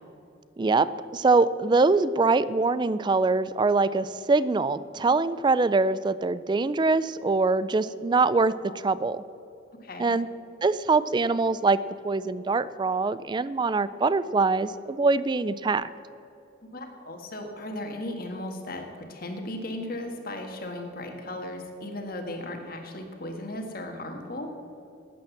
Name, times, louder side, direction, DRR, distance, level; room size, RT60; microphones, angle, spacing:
voice 1, 0.6-8.6 8.8-9.2 10.0-10.3 10.6-15.9, right 3 dB, 25° right, 16 dB, 0.3 m, -23 dB
voice 2, 9.8-10.2 16.7-24.5, left 1 dB, 50° left, 4 dB, 1.6 m, -36 dB
12.0 x 9.0 x 7.1 m, 2.6 s
head